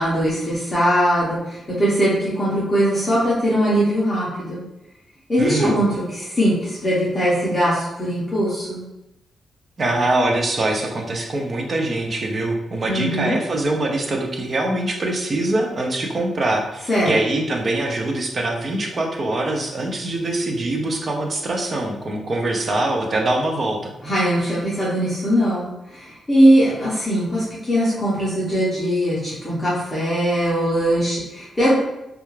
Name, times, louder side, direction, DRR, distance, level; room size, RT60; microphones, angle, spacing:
voice 1, 0.0-4.6 5.3-8.8 12.9-13.4 16.9-17.1 24.0-31.7, equal, 15° left, -9 dB, 0.6 m, -20 dB
voice 2, 5.4-5.8 9.8-23.9, right 2 dB, 35° right, 2 dB, 0.4 m, -23 dB
2.3 x 2.2 x 3.0 m, 0.90 s
wide cardioid pair, 155°, 0 cm